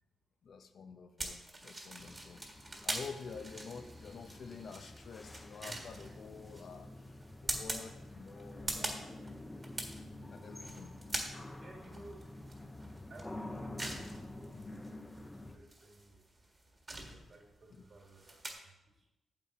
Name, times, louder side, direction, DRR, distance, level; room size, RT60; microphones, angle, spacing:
voice 1, 0.4-2.4 2.8-6.9 7.4-9.1 10.3-11.0 14.5-14.7 17.7-17.8, left 5 dB, 60° left, 8 dB, 0.8 m, -49 dB
sound 1, 1.2-18.5, right 2 dB, 25° right, 1.6 m, -44 dB
sound 2, 2.0-15.6, left 1 dB, 10° left, 0.7 m, -48 dB
voice 2, 10.5-10.8 11.6-12.5 13.1-14.7 15.2-16.2 17.1-19.1, right 2 dB, 45° right, 1 dB, 1.8 m, -58 dB
9.1 x 7.6 x 4.2 m, 0.96 s
cardioid pair, 115°, 0 cm